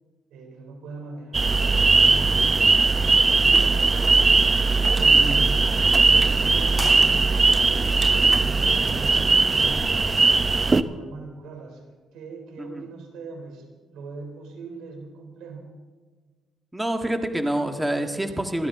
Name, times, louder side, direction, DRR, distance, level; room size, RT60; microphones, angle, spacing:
voice 1, 0.3-4.0 4.8-9.8 10.6-11.8 12.1-15.7, right 3 dB, 90° right, 4 dB, 3.3 m, -40 dB
sound 1, 1.3-10.8, right 3 dB, 25° right, 0.7 m, -19 dB
sound 2, 6.7-7.8, left 1 dB, 10° left, 5.1 m, -35 dB
voice 2, 16.7-18.7, right 1 dB, 5° right, 4 dB, 1.7 m, -27 dB
27.5 x 12.5 x 3.7 m, 1.4 s
cardioid pair, 90°, 0 cm